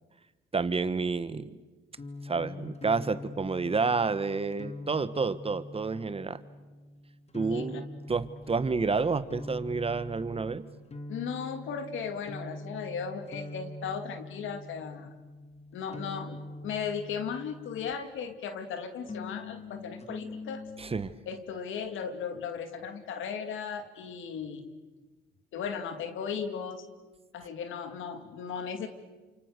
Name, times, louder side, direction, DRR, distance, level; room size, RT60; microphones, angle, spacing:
voice 1, 0.5-1.6 2.2-6.4 7.3-7.8 8.1-10.6 20.8-21.1, right 4 dB, 30° right, 14 dB, 1.4 m, -29 dB
sound 1, 1.9-18.2 19.0-21.0, left 2 dB, 30° left, 2.3 m, -44 dB
voice 2, 7.5-7.8 11.1-15.1 15.7-20.6 21.3-24.7 25.5-26.8 27.3-28.9, left 6 dB, 80° left, 8 dB, 2.8 m, -36 dB
29.0 x 27.5 x 6.8 m, 1.2 s
cardioid pair, 90°, 20 cm